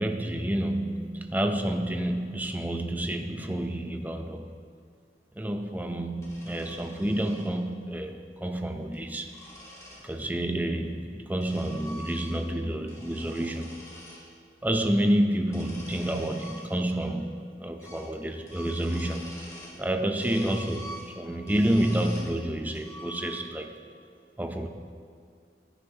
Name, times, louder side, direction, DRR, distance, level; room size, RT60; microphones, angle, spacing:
voice 1, 0.0-4.5 5.4-9.3 10.0-13.8 14.6-19.5 19.8-23.8 24.4-24.7, right 1 dB, 10° right, 5 dB, 0.6 m, -29 dB
sound 1, 6.2-7.5 8.7-10.0 10.9-12.6 12.8-14.2 15.4-17.1 17.4-17.5 17.8-18.1 18.4-19.8 20.2-22.3 22.7-23.7, equal, 15° left, 2.1 m, -46 dB
16.5 x 10.0 x 2.9 m, 2.2 s
head